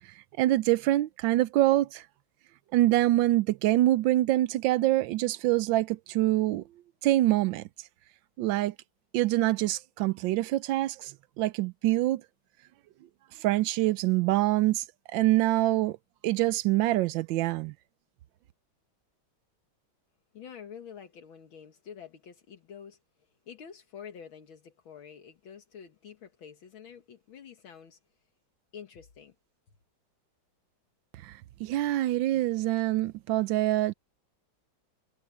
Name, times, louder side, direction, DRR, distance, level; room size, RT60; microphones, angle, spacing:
voice 1, 0.4-2.0 2.7-6.6 7.0-7.6 8.4-8.7 9.1-11.1 11.4-12.2 13.4-14.8 15.1-16.0 16.2-17.7 31.2-31.3 31.6-33.9, right 15 dB, 75° right, 1.3 m, -25 dB
voice 2, 20.3-23.0 23.5-28.0 28.7-29.3, left 7 dB, 75° left, 2.2 m, -47 dB
omnidirectional pair, 2.3 m